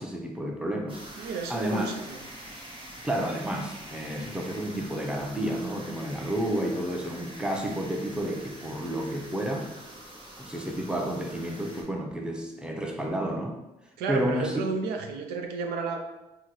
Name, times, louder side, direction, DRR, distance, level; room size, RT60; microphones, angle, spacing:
voice 1, 0.0-2.0 3.0-9.7 10.4-13.6 14.1-14.6, right 1 dB, 5° right, 1 dB, 0.6 m, -31 dB
sound 1, 0.9-11.8, right 1 dB, 30° right, 1.0 m, -45 dB
voice 2, 1.2-2.2 14.0-16.0, right 4 dB, 85° right, 3 dB, 0.4 m, -32 dB
3.6 x 2.1 x 3.0 m, 0.99 s
supercardioid pair, 55°, 16 cm